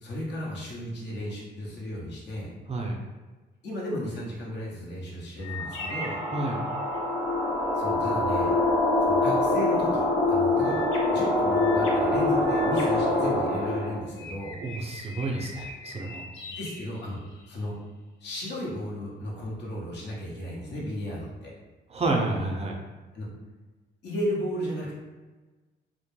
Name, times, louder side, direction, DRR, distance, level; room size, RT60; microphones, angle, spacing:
voice 1, 0.0-2.5 3.6-6.2 7.7-8.5 9.0-10.8 11.1-14.6 16.5-17.2 17.5-17.8 18.2-21.5 23.1-23.3 24.0-24.9, equal, 60° left, -4 dB, 0.8 m, -34 dB
sound 1, 5.4-7.1 10.6-13.8 14.2-17.6, left 2 dB, 85° left, 0.5 m, -41 dB
sound 2, 5.6-14.0, left 2 dB, 10° left, 0.7 m, -25 dB
voice 2, 6.3-6.6 14.6-16.2 21.9-22.8, right 2 dB, 30° right, 0 dB, 0.4 m, -29 dB
2.1 x 2.1 x 3.0 m, 1.3 s
cardioid pair, 90°, 20 cm